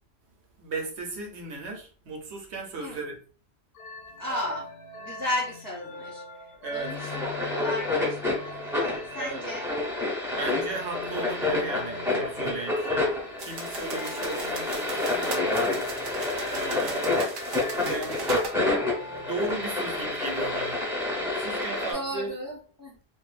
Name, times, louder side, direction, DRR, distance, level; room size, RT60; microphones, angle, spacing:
voice 1, 0.6-3.2 6.6-7.0 9.2-9.4 10.3-13.0 13.4-16.1 16.4-17.1 17.8-18.3 19.0-22.3, right 3 dB, 85° right, 1.0 m, -36 dB
voice 2, 2.8-3.1 4.2-4.7 5.0-9.7 16.6-17.0 21.9-23.0, left 1 dB, 20° left, 0.7 m, -35 dB
sound 1, 3.7-20.2, left 2 dB, 65° left, 0.7 m, -42 dB
sound 2, 6.8-21.9, left 2 dB, ahead, 0.9 m, -29 dB
sound 3, 13.4-18.6, right 4 dB, 60° right, 0.7 m, -39 dB
2.6 x 2.1 x 2.4 m
omnidirectional pair, 1.1 m